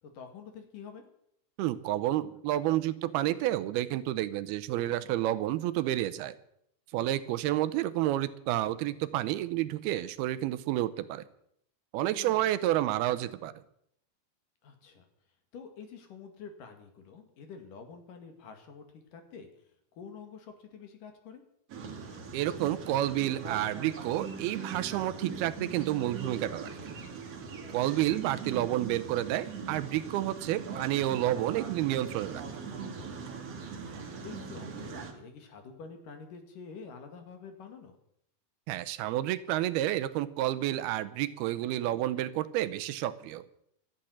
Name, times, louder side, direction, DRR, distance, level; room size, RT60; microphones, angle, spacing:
voice 1, 0.0-1.0 12.1-12.5 14.6-15.1 15.5-19.5 19.9-21.4 28.0-28.2 33.5-33.8 34.2-38.0, left 5 dB, 60° left, 6 dB, 3.5 m, -48 dB
voice 2, 1.6-6.3 6.9-11.2 11.9-13.5 22.3-26.9 27.7-32.4 38.7-43.4, right 14 dB, 80° right, 14 dB, 2.6 m, -30 dB
sound 1, 21.7-35.1, right 5 dB, 45° right, 2.6 m, -41 dB
13.0 x 10.5 x 9.9 m, 0.71 s
omnidirectional pair, 4.5 m